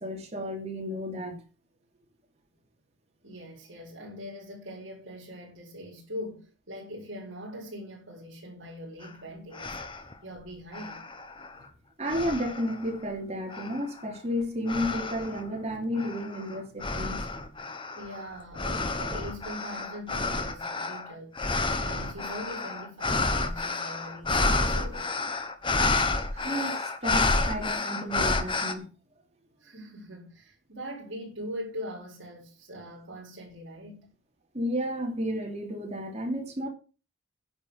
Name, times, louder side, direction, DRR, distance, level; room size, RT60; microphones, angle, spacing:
voice 1, 0.0-1.4 12.0-17.4 26.3-28.9 34.5-36.7, equal, 35° right, 3.1 m, -32 dB
voice 2, 3.2-11.4 17.9-21.4 21.8-25.1 29.6-34.1, equal, 65° right, 4.1 m, -42 dB
sound 1, 9.0-9.1 9.5-10.1 10.7-11.6 12.1-12.9 13.5-14.0 14.7-15.4 16.0-28.7, left 3 dB, 25° left, 1.2 m, -30 dB
10.5 x 6.6 x 8.0 m
head